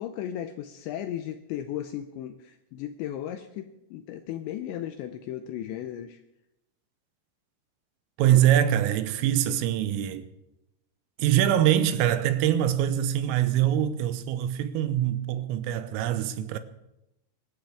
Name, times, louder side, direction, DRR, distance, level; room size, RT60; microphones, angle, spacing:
voice 1, 0.0-6.2, left 11 dB, 80° left, 2.6 m, -36 dB
voice 2, 8.2-10.3 11.2-16.6, right 11 dB, 80° right, 3.4 m, -24 dB
27.0 x 13.0 x 3.5 m
omnidirectional pair, 5.9 m